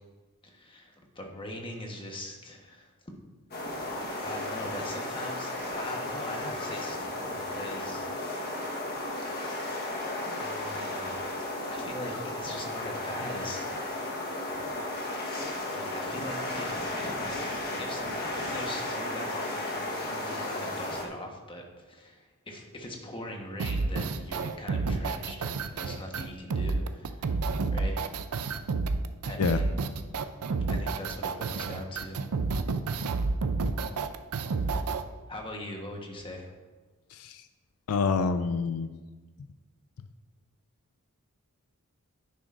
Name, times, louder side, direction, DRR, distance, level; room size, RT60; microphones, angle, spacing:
voice 1, 0.4-2.9 3.6-8.8 10.4-11.4 11.7-13.7 14.1-14.2 15.7-17.3 17.8-27.3 27.7-28.0 29.2-29.7 30.7-32.2 35.3-36.5, left 1 dB, 25° left, 1 dB, 1.2 m, -41 dB
sound 1, 3.5-21.0, left 1 dB, 45° left, 1.3 m, -34 dB
sound 2, 23.6-35.0, right 4 dB, 85° right, 0.5 m, -30 dB
voice 2, 37.1-37.4 37.9-38.9, left 5 dB, 80° left, 10 dB, 0.4 m, -27 dB
10.0 x 9.2 x 2.5 m, 1.3 s
head